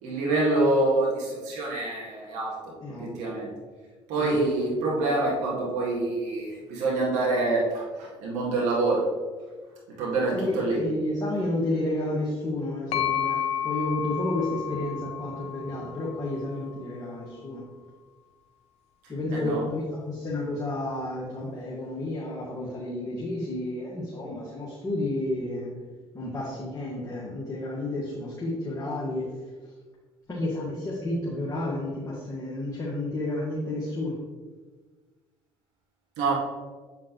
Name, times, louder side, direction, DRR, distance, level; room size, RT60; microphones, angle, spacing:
voice 1, 0.0-2.6 2.9-3.5 4.1-9.0 10.0-10.8 19.3-19.6 36.2-36.3, right 2 dB, 70° right, -4 dB, 2.0 m, -26 dB
voice 2, 2.8-3.4 4.2-4.4 10.3-17.6 19.1-25.7 26.1-29.4 29.6-29.7 30.3-34.2, left 1 dB, 25° left, -5 dB, 1.8 m, -31 dB
sound 1, 12.9-16.7, left 9 dB, 60° left, 0.8 m, -31 dB
7.6 x 5.8 x 3.1 m, 1.4 s
supercardioid pair, 70°, 12 cm